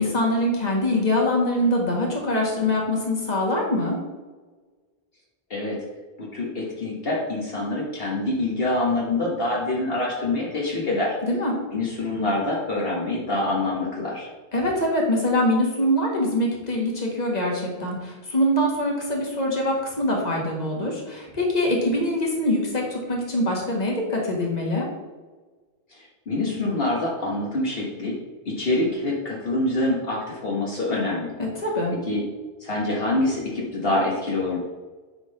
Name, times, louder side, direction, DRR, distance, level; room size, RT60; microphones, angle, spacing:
voice 1, 0.0-4.0 11.2-11.5 14.5-24.9 31.4-31.9, left 1 dB, 40° left, -1 dB, 1.8 m, -24 dB
voice 2, 6.2-11.2 11.7-14.3 25.9-28.1 28.5-31.3 32.1-32.3 32.6-34.6, left 2 dB, 65° left, -3 dB, 1.6 m, -25 dB
9.7 x 3.8 x 5.3 m, 1.3 s
omnidirectional pair, 1.0 m